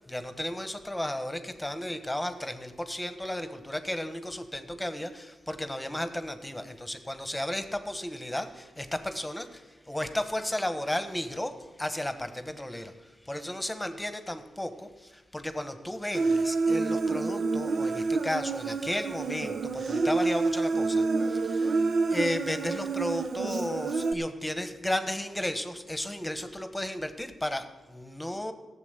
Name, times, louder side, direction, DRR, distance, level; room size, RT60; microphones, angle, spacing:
voice 1, 0.1-11.5 11.8-28.5, left 1 dB, 10° left, 9 dB, 1.3 m, -34 dB
Human voice, 16.1-24.1, right 3 dB, 65° right, 0.7 m, -28 dB
14.0 x 7.3 x 8.2 m, 1.2 s
cardioid pair, 55°, 0 cm